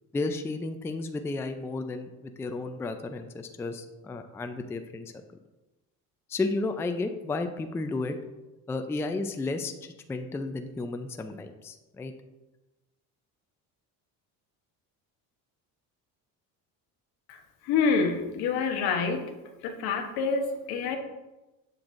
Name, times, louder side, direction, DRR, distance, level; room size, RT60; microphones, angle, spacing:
voice 1, 0.1-5.1 6.3-8.2 8.7-12.1, left 3 dB, 5° left, 7 dB, 0.3 m, -33 dB
voice 2, 17.3-19.2 19.6-21.0, left 5 dB, 80° left, 5 dB, 1.0 m, -27 dB
7.9 x 5.5 x 2.5 m, 1.1 s
cardioid pair, 105°, 38 cm